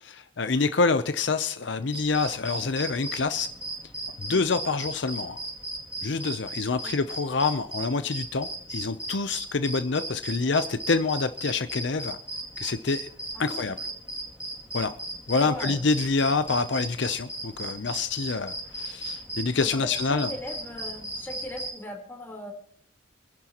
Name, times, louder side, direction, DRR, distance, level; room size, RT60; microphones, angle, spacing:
voice 1, 0.4-3.5 4.2-5.4 6.0-12.2 12.6-13.1 13.4-13.7 14.7-14.9 15.3-20.3, left 4 dB, 65° left, 10 dB, 0.6 m, -26 dB
sound 1, 1.9-21.7, right 1 dB, 5° right, 2.5 m, -36 dB
voice 2, 13.3-13.8 15.4-15.9 19.6-22.5, left 1 dB, 10° left, 0 dB, 3.8 m, -39 dB
28.0 x 11.0 x 3.0 m, 0.62 s
head